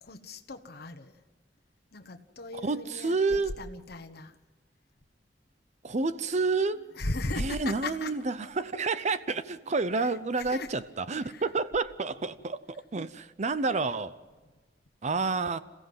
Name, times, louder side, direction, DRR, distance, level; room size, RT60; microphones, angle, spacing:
voice 1, 0.0-1.1 1.9-4.3 7.0-8.1 10.5-10.7 11.3-11.4, left 2 dB, 60° left, 1.2 m, -37 dB
voice 2, 2.5-3.6 5.8-6.9 7.4-14.2 15.0-15.6, right 3 dB, 40° right, 0.6 m, -29 dB
27.5 x 15.5 x 7.8 m
head